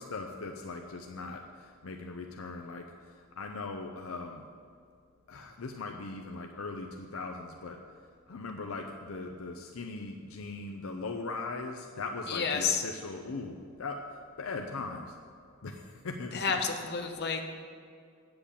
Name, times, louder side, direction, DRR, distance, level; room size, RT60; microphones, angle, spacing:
voice 1, 0.0-4.4 5.3-7.8 8.3-15.1 15.6-16.6, left 3 dB, 75° left, 3 dB, 0.6 m, -39 dB
voice 2, 12.3-12.8 16.3-17.4, left 5 dB, 50° left, 3 dB, 1.0 m, -30 dB
8.5 x 7.9 x 6.9 m, 2.2 s
head